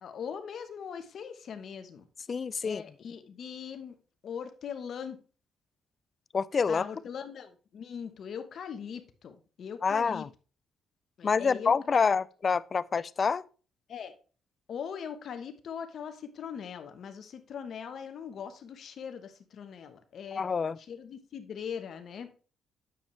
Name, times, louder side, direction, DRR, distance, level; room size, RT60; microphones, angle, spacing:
voice 1, 0.0-2.1 2.6-4.0 4.2-5.2 6.7-10.2 11.2-12.0 13.9-14.1 14.7-20.4 20.8-22.3, left 7 dB, 60° left, 1.1 m, -41 dB
voice 2, 2.3-2.8 6.3-6.8 9.8-10.3 11.2-13.4 20.3-20.8, left 5 dB, 40° left, 0.4 m, -27 dB
9.1 x 7.2 x 3.3 m
cardioid pair, 90°, 0 cm